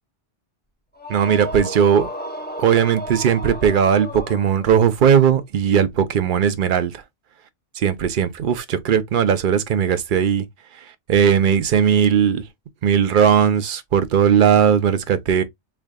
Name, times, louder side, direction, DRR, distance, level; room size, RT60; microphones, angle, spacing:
sound 1, 1.0-4.9, equal, 10° left, 0.6 m, -33 dB
voice 1, 1.1-2.1 2.6-7.0 7.8-10.4 10.8-12.4 12.8-15.4, right 8 dB, 55° right, 0.7 m, -18 dB
3.6 x 3.4 x 2.2 m
omnidirectional pair, 1.2 m